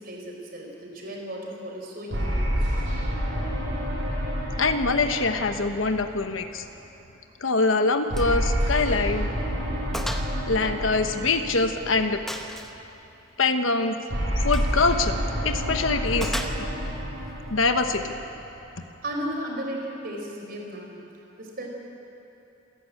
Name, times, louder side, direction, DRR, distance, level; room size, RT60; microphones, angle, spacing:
voice 1, 0.0-2.6 19.0-21.0 21.4-21.7, right 1 dB, 50° right, 0 dB, 4.2 m, -35 dB
sound 1, 2.1-6.7 8.1-12.5 14.1-18.7, equal, 70° right, 6.4 m, -29 dB
voice 2, 4.6-6.6 7.4-9.3 10.5-12.2 13.4-14.0 14.4-15.1 15.4-16.3 17.5-18.1, left 3 dB, 85° left, 7 dB, 1.1 m, -24 dB
Gunshot gunfire, 8.1-8.4 8.7-8.8 9.3-9.4 9.9-10.3 10.6-11.6 12.3-12.8 14.4-14.7 16.2-16.9, equal, ahead, 1.0 m, -35 dB
27.5 x 12.0 x 8.7 m, 3.0 s
head